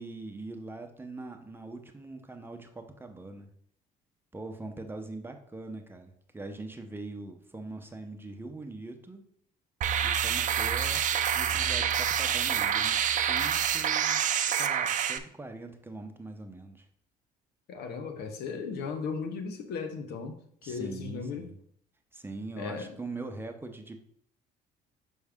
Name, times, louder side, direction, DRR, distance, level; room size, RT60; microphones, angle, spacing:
voice 1, 0.0-3.5 4.3-9.2 10.0-11.0 11.3-14.2 14.6-16.8 20.6-21.6 22.1-24.0, right 2 dB, 15° right, 4 dB, 0.8 m, -42 dB
sound 1, 9.8-15.2, right 9 dB, 50° right, 0.6 m, -27 dB
voice 2, 17.7-20.4 20.6-21.5 22.6-22.9, left 5 dB, 75° left, 6 dB, 1.0 m, -36 dB
6.2 x 5.4 x 3.6 m, 0.65 s
cardioid pair, 110°, 17 cm